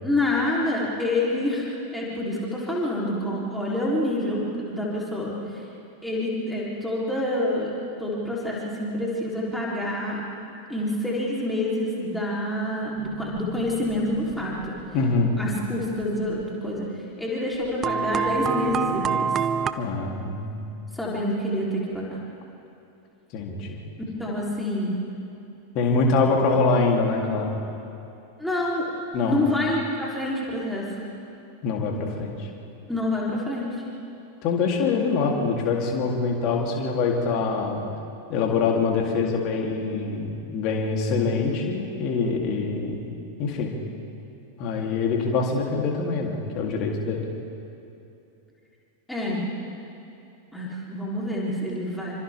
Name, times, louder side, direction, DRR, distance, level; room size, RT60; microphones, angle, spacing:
voice 1, 0.0-5.6 6.0-10.2 10.7-14.7 15.4-16.9 17.2-19.3 20.9-22.2 24.2-25.0 28.4-28.9 29.2-30.9 32.9-33.8 49.1-49.4 50.5-52.1, left 1 dB, 5° left, -6 dB, 3.9 m, -27 dB
sound 1, 13.0-15.5 16.0-16.1 16.4-16.5 17.8-19.7, right 6 dB, 25° right, 0.7 m, -28 dB
voice 2, 14.9-15.4 19.8-20.6 23.3-23.8 25.7-27.5 29.1-29.4 31.6-32.5 34.4-37.8 38.3-43.0 43.4-43.8 44.6-47.2, left 4 dB, 40° left, 0 dB, 3.5 m, -24 dB
28.5 x 25.5 x 3.8 m, 2.8 s
figure-of-eight pair, 90°, 0 cm